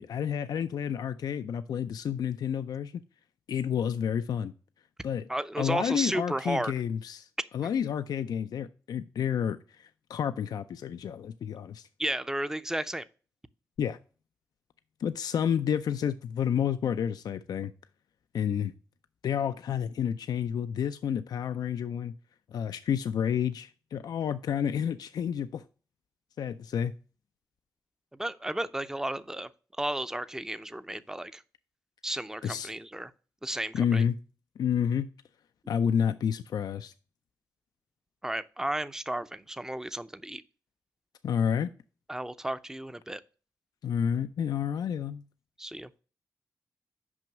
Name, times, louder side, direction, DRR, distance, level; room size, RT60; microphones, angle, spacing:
voice 1, 0.0-3.0 3.5-4.5 5.0-5.3 5.6-7.3 7.5-11.9 13.8-14.0 15.0-17.7 18.3-18.7 19.2-22.1 22.5-25.6 26.4-26.9 32.4-32.7 33.7-34.1 34.6-35.1 35.7-36.9 41.2-41.7 43.8-45.2, left 8 dB, 75° left, 0.4 m, -30 dB
voice 2, 5.3-6.7 12.0-13.0 28.2-29.5 29.8-31.4 32.0-33.1 33.4-34.0 38.2-40.4 42.1-43.2 45.6-45.9, right 1 dB, 10° right, 0.5 m, -33 dB
6.1 x 5.3 x 5.8 m
cardioid pair, 60°, 7 cm